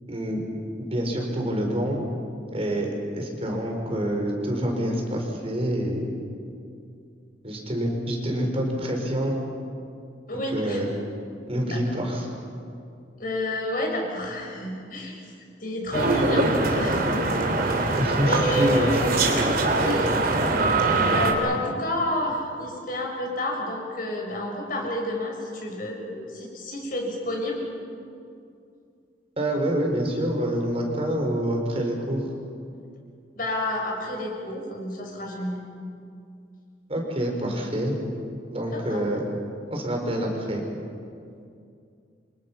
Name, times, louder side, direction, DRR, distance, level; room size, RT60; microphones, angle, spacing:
voice 1, 0.1-0.4 0.8-2.0 2.5-6.1 7.4-9.3 10.5-10.9 11.5-12.3 18.0-19.0 29.4-32.2 36.9-38.0 38.5-39.3 39.7-40.6, right 1 dB, 35° right, 1 dB, 4.4 m, -27 dB
voice 2, 10.3-10.8 11.7-12.0 13.2-15.1 15.6-16.5 16.8-17.3 17.6-17.9 18.3-19.0 19.8-20.1 21.1-27.7 33.4-35.6 38.7-39.0, left 1 dB, 50° left, 0 dB, 5.9 m, -30 dB
sound 1, 15.9-21.3, right 2 dB, 55° right, 3.3 m, -23 dB
28.5 x 26.0 x 5.9 m, 2.4 s
head